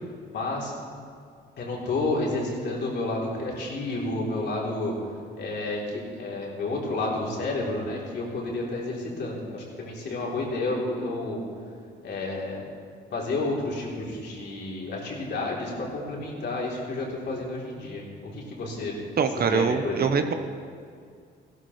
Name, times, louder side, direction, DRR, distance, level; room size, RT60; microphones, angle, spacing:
voice 1, 0.3-0.7 1.6-4.9 5.4-11.4 12.0-12.6 13.1-18.9 19.4-20.1, left 2 dB, 60° left, -4 dB, 3.4 m, -30 dB
voice 2, 19.2-20.3, right 6 dB, 50° right, 8 dB, 0.9 m, -24 dB
15.5 x 13.0 x 3.2 m, 2.3 s
cardioid pair, 90°, 20 cm